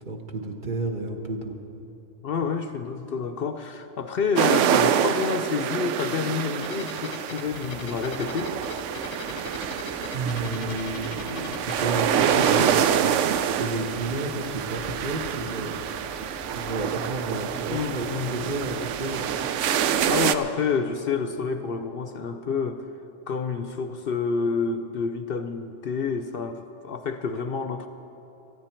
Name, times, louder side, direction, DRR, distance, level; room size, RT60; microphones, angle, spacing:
voice 1, 0.0-1.6 10.1-15.7 16.5-19.3, right 2 dB, 45° right, 3 dB, 1.3 m, -31 dB
voice 2, 2.2-8.5 17.7-18.3 19.6-19.8 20.1-22.8 23.3-27.9, left 5 dB, 60° left, 8 dB, 0.8 m, -28 dB
sound 1, 4.4-20.3, right 9 dB, 85° right, 0.9 m, -26 dB
sound 2, 6.6-12.6, left 8 dB, 80° left, 0.9 m, -42 dB
sound 3, 7.5-20.3, left 1 dB, ahead, 0.8 m, -47 dB
19.0 x 14.0 x 4.5 m, 3.0 s
omnidirectional pair, 1.2 m